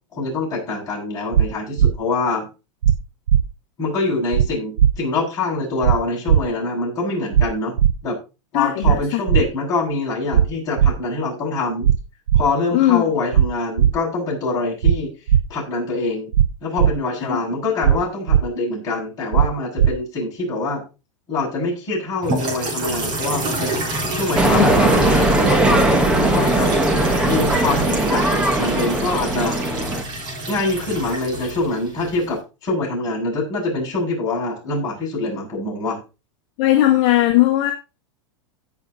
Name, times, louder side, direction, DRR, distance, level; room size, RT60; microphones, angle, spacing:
voice 1, 0.1-2.5 3.8-7.8 8.0-8.2 8.5-11.9 12.3-15.1 15.5-16.3 16.6-20.8 21.3-23.7 24.1-26.7 27.2-29.7 30.5-36.0, left 3 dB, 20° left, -5 dB, 7.9 m, -24 dB
sound 1, 1.3-1.5 1.8-1.9 2.8-3.0 3.3-3.4 4.3-4.5 4.8-4.9 5.8-6.0 6.3-6.4 7.3-7.5 7.8-7.9 8.8-9.0 9.3-9.4 10.3-10.5 10.8-10.9 11.8-12.0 12.3-12.4 13.3-13.5 13.8-13.9 14.8-15.0 15.3-15.4 16.3-16.5 16.8-16.9 17.8-18.0 18.3-18.4 19.3-19.5 19.8-19.9, right 9 dB, 90° right, 0.7 m, -15 dB
voice 2, 8.5-9.4 12.7-13.1 17.3-17.4 24.6-24.7 25.1-25.3 36.6-37.7, left 14 dB, 40° left, 3 dB, 1.6 m, -18 dB
sound 2, 22.2-32.4, right 1 dB, 25° right, 3.3 m, -28 dB
sound 3, 24.3-30.0, right 2 dB, 5° right, 1.2 m, -18 dB
17.0 x 5.8 x 3.9 m, 0.30 s
supercardioid pair, 160°, 16 cm